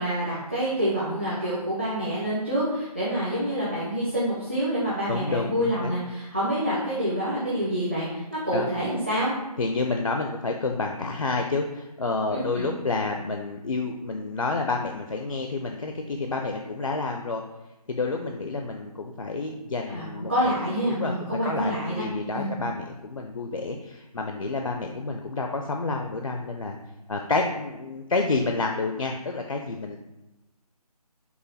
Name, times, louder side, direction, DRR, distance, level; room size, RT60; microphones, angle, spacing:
voice 1, 0.0-9.3 12.3-12.6 19.9-22.0 22.3-22.5, equal, 20° right, -10 dB, 0.5 m, -27 dB
voice 2, 5.1-5.9 8.5-8.7 9.6-17.4 17.9-21.1 21.4-26.8 27.1-30.0, left 3 dB, 55° left, 3 dB, 0.5 m, -29 dB
5.5 x 2.2 x 4.0 m, 0.99 s
figure-of-eight pair, 170°, 20 cm